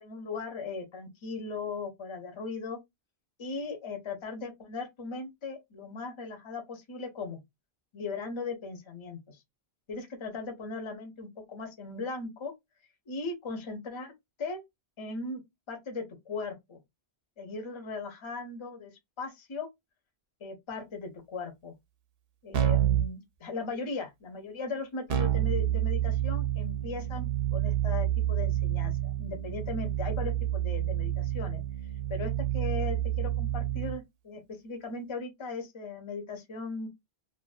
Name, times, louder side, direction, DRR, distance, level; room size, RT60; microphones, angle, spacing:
voice 1, 0.0-2.8 3.4-7.4 7.9-9.4 9.9-12.5 13.1-14.1 14.4-14.6 15.0-15.4 15.7-16.8 17.4-18.9 19.2-19.7 20.4-21.7 22.4-31.6 32.1-36.9, left 4 dB, 35° left, 0.6 m, -38 dB
Keyboard (musical), 22.5-23.1 25.1-34.0, right 12 dB, 65° right, 0.7 m, -29 dB
2.5 x 2.3 x 2.3 m
omnidirectional pair, 1.1 m